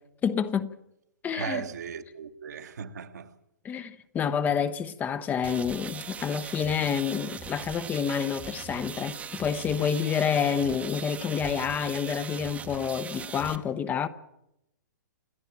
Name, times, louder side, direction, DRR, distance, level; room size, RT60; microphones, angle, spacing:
voice 1, 0.2-0.7 1.2-1.6 3.6-14.1, left 7 dB, 15° left, 0.8 m, -28 dB
voice 2, 1.3-3.3 10.0-10.2, right 7 dB, 60° right, 1.5 m, -37 dB
sound 1, 5.4-13.6, right 7 dB, 15° right, 0.9 m, -40 dB
28.0 x 10.5 x 8.9 m
figure-of-eight pair, 115°, 10 cm